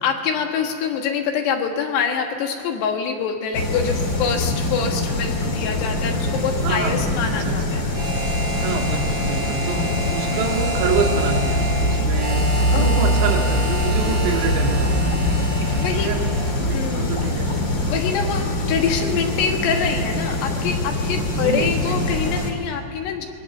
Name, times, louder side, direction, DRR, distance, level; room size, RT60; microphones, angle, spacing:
voice 1, 0.0-7.9 10.3-10.5 12.7-13.1 15.8-16.1 16.7-17.1 17.9-23.3, left 6 dB, 70° left, 4 dB, 3.5 m, -25 dB
sound 1, 3.5-22.5, left 1 dB, 35° left, 2.2 m, -23 dB
voice 2, 6.6-7.6 8.6-12.5 12.7-15.0 16.0-16.3 16.6-17.5 21.3-22.0, right 5 dB, 70° right, 1 dB, 4.3 m, -27 dB
Harmonica, 7.9-16.5, right 1 dB, 35° right, 3.1 m, -30 dB
26.5 x 21.0 x 7.2 m, 2.2 s
omnidirectional pair, 5.2 m